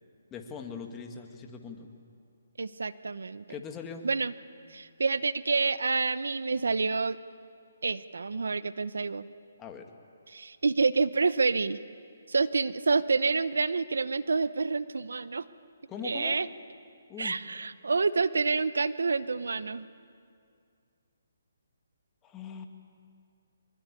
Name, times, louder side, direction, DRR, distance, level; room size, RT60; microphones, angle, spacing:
voice 1, 0.3-1.9 3.5-4.0 9.6-9.9 15.9-16.4 17.1-17.4 22.2-22.7, left 6 dB, 15° left, 4 dB, 1.9 m, -41 dB
voice 2, 2.6-3.4 4.0-4.3 4.7-7.2 7.8-9.3 10.3-11.8 12.3-15.4 16.0-16.5 17.2-19.9, right 4 dB, 85° right, 15 dB, 0.9 m, -28 dB
24.0 x 23.0 x 9.8 m, 2.3 s
hypercardioid pair, 155°, 0 cm